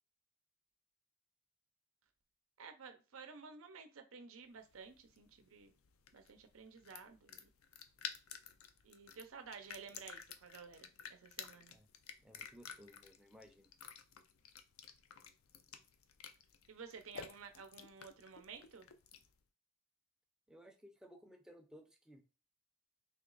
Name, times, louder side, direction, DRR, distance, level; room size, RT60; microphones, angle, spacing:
voice 1, 2.6-5.7 6.1-7.5 8.8-11.8 16.7-18.9, right 5 dB, 80° right, 0.7 m, -53 dB
sound 1, 4.6-19.4, left 7 dB, 85° left, 0.5 m, -53 dB
voice 2, 12.2-13.7 20.5-22.2, equal, 5° right, 0.5 m, -59 dB
3.5 x 3.0 x 3.9 m
head